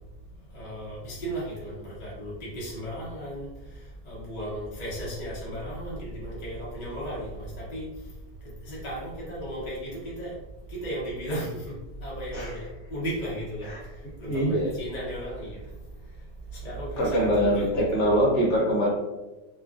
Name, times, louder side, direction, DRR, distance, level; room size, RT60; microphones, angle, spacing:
voice 1, 0.5-3.5 4.1-7.9 8.7-10.3 10.7-11.6 12.0-12.6 12.9-13.7 14.2-15.6 16.6-17.8, right 1 dB, 35° left, -7 dB, 0.7 m, -35 dB
voice 2, 14.2-14.7 17.0-18.9, equal, 60° left, -5 dB, 1.1 m, -23 dB
3.0 x 2.4 x 2.4 m, 1.1 s
omnidirectional pair, 1.9 m